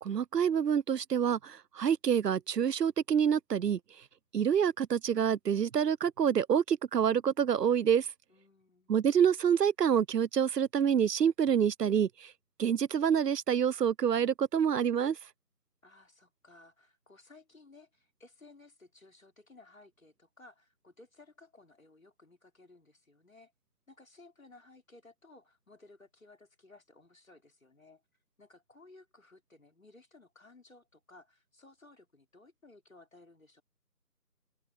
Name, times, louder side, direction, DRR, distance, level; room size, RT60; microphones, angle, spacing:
voice 1, 0.0-3.8 4.3-8.1 8.9-12.1 12.6-15.2, right 8 dB, 85° right, 0.6 m, -27 dB
voice 2, 8.3-9.1 15.8-23.5 23.9-28.0 28.4-33.6, left 2 dB, 55° left, 4.3 m, -58 dB
figure-of-eight pair, 170°, 47 cm